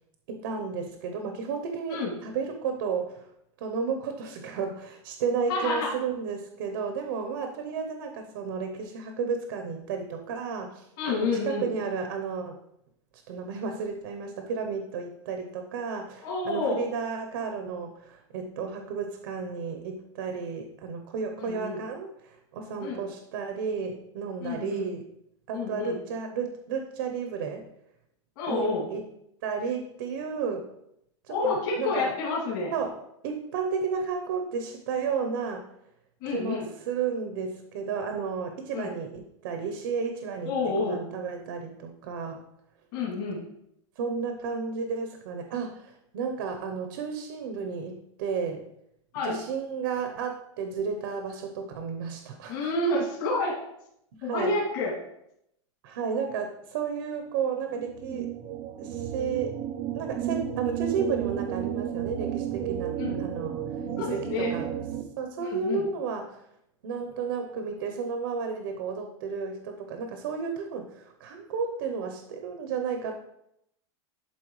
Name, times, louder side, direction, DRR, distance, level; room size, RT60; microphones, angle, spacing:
voice 1, 0.3-3.3 3.6-12.6 13.3-25.0 25.5-27.6 28.5-29.0 29.4-30.7 31.3-32.1 32.7-35.6 36.3-42.4 44.0-48.7 49.2-52.6 54.2-54.5 55.8-58.3 58.8-59.6 59.9-63.7 64.0-64.7 65.2-66.4 66.8-73.1, right 5 dB, 45° right, 5 dB, 0.8 m, -32 dB
voice 2, 5.5-5.9 11.0-11.7 16.2-16.8 21.4-21.8 22.8-23.0 24.4-24.9 25.5-26.0 28.4-28.9 31.3-32.7 36.2-36.7 38.7-38.9 40.4-41.0 42.9-43.5 49.1-49.4 52.5-53.5 54.2-54.9 63.0-63.2 63.9-64.6 65.4-65.9, left 3 dB, 40° left, -5 dB, 2.4 m, -29 dB
sound 1, 57.7-65.0, right 10 dB, 20° right, 0.4 m, -32 dB
11.0 x 4.2 x 3.1 m, 0.79 s
supercardioid pair, 180°, 16 cm